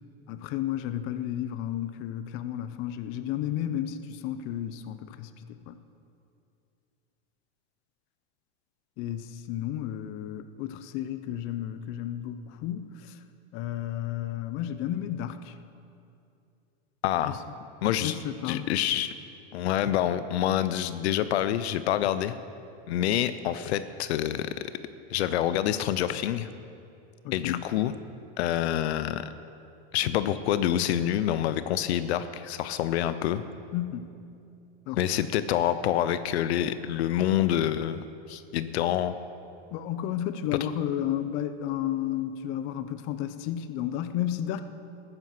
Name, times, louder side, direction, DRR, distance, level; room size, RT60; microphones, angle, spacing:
voice 1, 0.3-5.8 9.0-13.2 13.5-15.5 17.2-17.4 17.8-18.7 27.2-27.7 33.7-34.1 34.9-35.0 39.7-44.6, left 11 dB, 40° left, 11 dB, 0.7 m, -32 dB
voice 2, 17.0-17.4 17.8-18.2 18.4-19.1 19.5-22.3 22.9-24.5 25.1-26.5 27.3-27.9 28.4-29.3 29.9-33.4 35.0-39.2, left 11 dB, 80° left, 13 dB, 0.7 m, -27 dB
14.0 x 9.8 x 6.0 m, 2.6 s
supercardioid pair, 140°, 32 cm